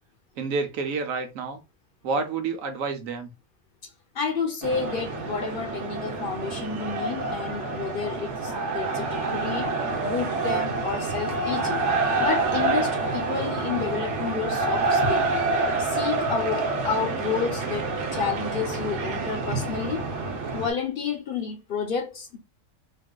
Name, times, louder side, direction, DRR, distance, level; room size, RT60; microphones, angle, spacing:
voice 1, 0.4-1.6 2.0-3.3, right 4 dB, 90° right, 1.1 m, -29 dB
voice 2, 4.1-9.7 10.0-11.8 12.2-15.3 15.8-20.1 20.5-22.4, left 6 dB, 50° left, 0.7 m, -30 dB
sound 1, 4.6-20.7, right 3 dB, 65° right, 1.0 m, -27 dB
3.5 x 2.5 x 2.2 m
omnidirectional pair, 1.4 m